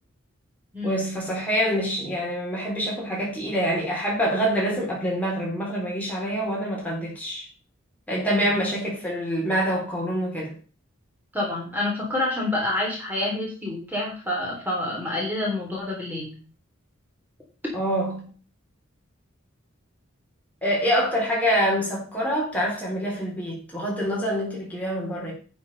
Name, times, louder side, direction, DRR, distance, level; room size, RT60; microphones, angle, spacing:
voice 1, 0.8-7.5 8.1-10.5 17.7-18.3 20.6-25.3, equal, 10° left, 3.7 m, -26 dB
voice 2, 11.3-16.3, left 2 dB, 10° right, 3.6 m, -28 dB
11.0 x 6.2 x 5.4 m
head